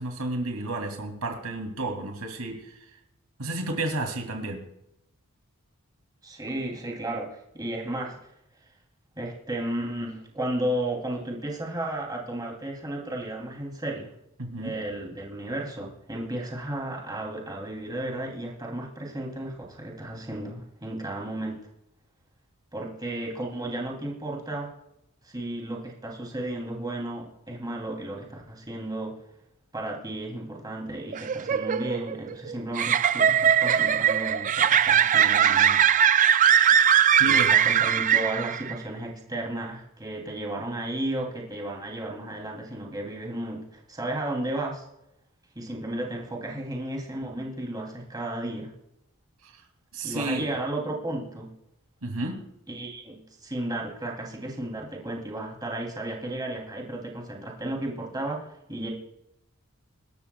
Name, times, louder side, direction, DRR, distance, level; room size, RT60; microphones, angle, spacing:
voice 1, 0.0-2.8 3.4-4.6 14.4-14.7 37.2-37.6 49.4-49.5 49.9-50.5 52.0-52.4, right 2 dB, 80° right, 3 dB, 2.7 m, -31 dB
voice 2, 6.2-8.2 9.2-14.1 14.6-21.6 22.7-24.7 25.2-29.2 29.7-36.0 37.2-44.8 45.5-48.7 50.0-51.5 52.7-58.9, right 1 dB, 20° right, -1 dB, 2.9 m, -33 dB
sound 1, 31.1-38.7, right 8 dB, 35° right, 0.4 m, -21 dB
25.0 x 12.5 x 2.3 m, 0.82 s
head